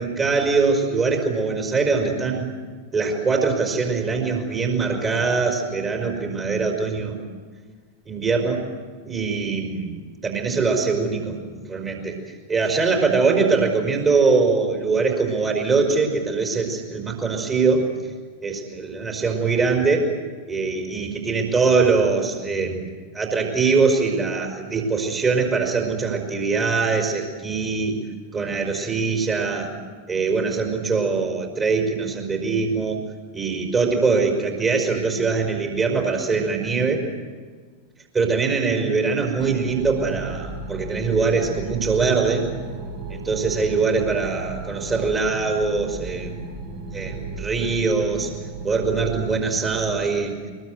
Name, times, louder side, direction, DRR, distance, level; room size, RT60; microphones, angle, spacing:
voice 1, 0.0-2.5 2.9-7.2 8.1-8.6 9.0-12.1 12.5-17.9 18.4-20.1 20.5-28.0 28.3-29.7 30.1-33.0 33.3-37.0 38.1-42.5 43.1-46.4 46.9-48.3 48.6-50.3, right 4 dB, 20° right, 1 dB, 5.0 m, -22 dB
sound 1, 39.4-49.9, right 3 dB, 65° right, 7.1 m, -35 dB
23.5 x 22.0 x 8.1 m, 1.5 s
figure-of-eight pair, 90°, 0 cm